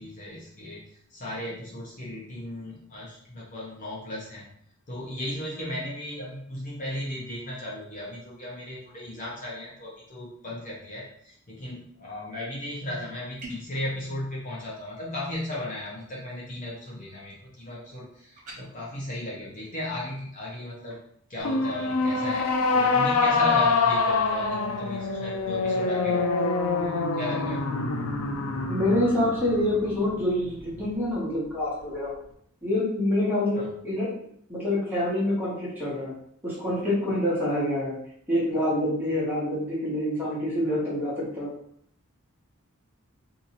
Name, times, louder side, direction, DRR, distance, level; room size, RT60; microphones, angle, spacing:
voice 1, 0.0-4.4 4.9-21.0 21.3-22.5 22.7-26.3 26.8-27.6 33.5-33.7, left 1 dB, 35° left, -5 dB, 0.7 m, -36 dB
sound 1, 13.4-13.8 18.4-18.6, equal, 35° right, 0.9 m, -40 dB
sound 2, 21.4-30.8, left 4 dB, 80° left, 0.5 m, -25 dB
voice 2, 28.7-32.1 32.6-34.1 34.5-36.1 36.4-38.0 38.3-41.5, left 1 dB, 10° right, -7 dB, 1.3 m, -26 dB
2.8 x 2.6 x 4.0 m, 0.67 s
head